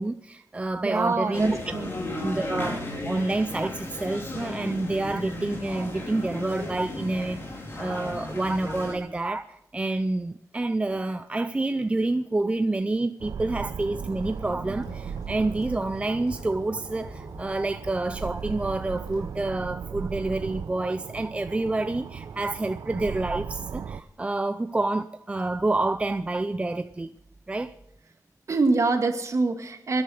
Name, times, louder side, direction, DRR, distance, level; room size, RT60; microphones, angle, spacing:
voice 1, 0.0-1.6 2.2-27.1 27.5-27.7, right 2 dB, 20° right, 10 dB, 0.5 m, -28 dB
voice 2, 0.8-1.9 28.5-30.0, right 3 dB, 50° right, 6 dB, 1.9 m, -25 dB
sound 1, 1.3-8.9, left 1 dB, 35° left, 3.7 m, -35 dB
sound 2, 13.2-24.0, right 7 dB, 75° right, 0.6 m, -37 dB
sound 3, 14.0-19.3, left 2 dB, 80° left, 3.2 m, -46 dB
24.5 x 10.5 x 5.0 m, 0.83 s
wide cardioid pair, 130°, 6 cm